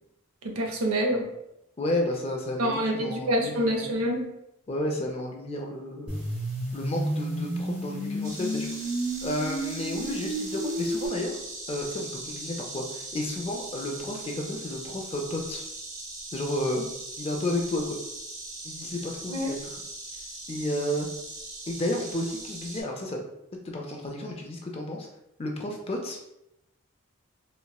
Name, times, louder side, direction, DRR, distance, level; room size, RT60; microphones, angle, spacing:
voice 1, 0.6-1.2 2.6-4.3 19.3-19.5, equal, 80° right, 2 dB, 0.6 m, -26 dB
voice 2, 1.8-3.9 4.7-6.2 6.7-8.7 9.2-11.3 11.7-15.6 16.3-16.9 17.2-18.0 18.6-19.8 20.5-21.1 21.7-23.2 23.6-25.1 25.4-26.2, left 1 dB, 25° left, 1 dB, 0.4 m, -32 dB
sound 1, 6.1-11.1, right 1 dB, 5° right, 0.8 m, -31 dB
Insect, 8.2-22.8, right 2 dB, 40° right, 0.5 m, -40 dB
4.0 x 2.1 x 2.3 m, 0.85 s
head